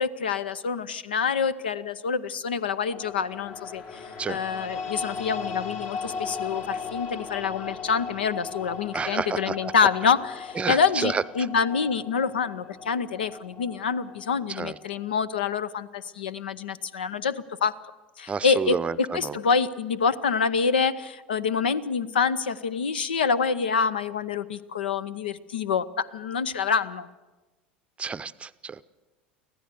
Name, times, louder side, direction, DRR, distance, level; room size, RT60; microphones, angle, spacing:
voice 1, 0.0-17.8 18.2-27.1, left 6 dB, 75° left, 17 dB, 0.7 m, -26 dB
sound 1, 2.9-15.1, left 5 dB, 45° left, 1.9 m, -37 dB
voice 2, 8.9-9.7 10.6-11.5 14.5-14.8 18.3-19.4 28.0-28.9, right 5 dB, 20° right, 15 dB, 0.6 m, -30 dB
24.5 x 16.0 x 6.8 m, 1.2 s
figure-of-eight pair, 75°, 5 cm